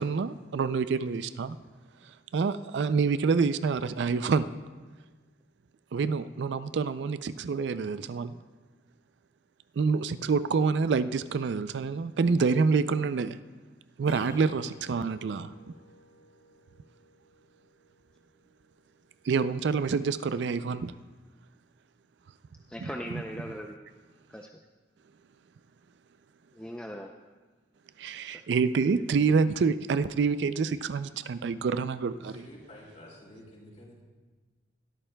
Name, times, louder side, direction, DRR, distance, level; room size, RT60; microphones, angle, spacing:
voice 1, 0.0-1.6 2.3-4.5 5.9-8.4 9.8-13.4 14.0-15.5 19.3-20.9 22.8-22.9 28.0-32.4, right 5 dB, 70° right, 13 dB, 0.4 m, -27 dB
Acoustic guitar / Strum, 14.0-18.5, left 1 dB, 60° left, 4.4 m, -51 dB
voice 2, 22.7-23.8 24.3-24.5 26.5-27.2 28.2-28.4, equal, 5° left, 1 dB, 0.4 m, -39 dB
voice 3, 32.2-34.0, left 1 dB, 40° left, -4 dB, 4.0 m, -50 dB
20.0 x 13.0 x 2.2 m, 1.3 s
head